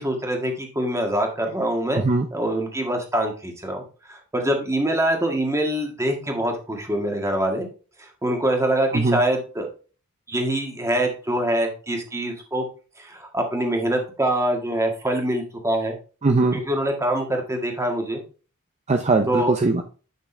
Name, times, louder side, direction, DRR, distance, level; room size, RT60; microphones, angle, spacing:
voice 1, 0.0-2.0 2.3-3.8 4.1-7.7 8.0-9.7 10.3-12.6 13.0-16.0 16.5-18.2 19.3-19.5, right 1 dB, 15° right, 2 dB, 1.7 m, -24 dB
voice 2, 1.9-2.3 8.9-9.2 16.2-16.6 18.9-19.8, right 3 dB, 30° right, 5 dB, 0.6 m, -20 dB
8.5 x 6.1 x 3.3 m, 0.36 s
head